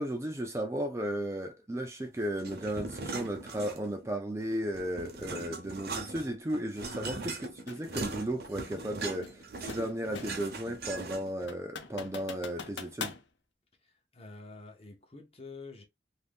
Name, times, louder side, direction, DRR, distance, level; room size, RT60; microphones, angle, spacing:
voice 1, 0.0-7.4 7.7-13.2, right 1 dB, 15° right, 0.4 m, -35 dB
sound 1, 2.4-4.1 4.4-11.4, right 3 dB, 55° right, 0.7 m, -40 dB
voice 2, 6.9-7.3 13.8-15.8, left 3 dB, 35° left, 0.8 m, -48 dB
sound 2, 7.7-7.9 9.2-10.5 10.9-11.0 11.5-13.2, left 5 dB, 90° left, 0.6 m, -42 dB
2.7 x 2.6 x 3.5 m
head